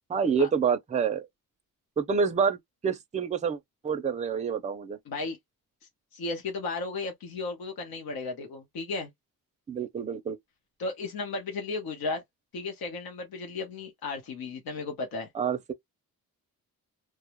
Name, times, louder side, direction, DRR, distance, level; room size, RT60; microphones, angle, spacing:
voice 1, 0.1-1.3 2.0-3.6 3.8-5.0 9.7-10.4 15.3-15.7, right 6 dB, 20° right, 0.4 m, -27 dB
voice 2, 5.1-5.4 6.1-9.1 10.8-12.2 12.5-15.3, left 3 dB, 85° left, 0.8 m, -34 dB
2.2 x 2.0 x 2.9 m
wide cardioid pair, 150°, 35 cm